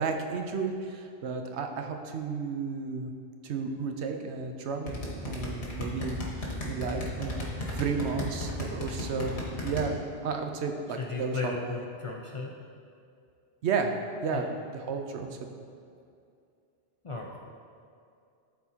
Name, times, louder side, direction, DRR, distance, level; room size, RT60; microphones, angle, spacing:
voice 1, 0.0-3.1 3.4-9.3 9.6-11.8 13.6-13.9 14.2-14.5 14.9-15.5, right 5 dB, 85° right, 4 dB, 0.9 m, -33 dB
sound 1, 4.9-9.8, left 2 dB, 75° left, 1.5 m, -34 dB
voice 2, 10.9-12.5 14.3-14.4 17.0-17.4, left 3 dB, 40° left, -1 dB, 0.5 m, -36 dB
12.0 x 4.2 x 2.8 m, 2.4 s
omnidirectional pair, 1.1 m